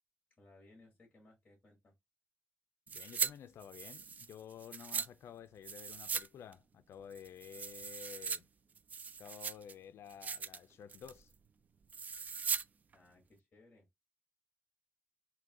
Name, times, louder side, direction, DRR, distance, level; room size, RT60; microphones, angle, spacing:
voice 1, 0.4-1.9 12.9-13.9, left 2 dB, 30° left, 1.7 m, -62 dB
voice 2, 2.9-8.5 9.2-11.3, left 8 dB, 85° left, 0.4 m, -52 dB
sound 1, 2.9-3.3 3.6-5.1 5.6-6.3 6.5-6.6 7.1-8.4 8.8-9.7 10.1-10.6 10.9-11.2 11.9-12.6 12.9-13.0, right 6 dB, 40° right, 0.3 m, -39 dB
3.8 x 2.8 x 3.6 m
wide cardioid pair, 150°, 4 cm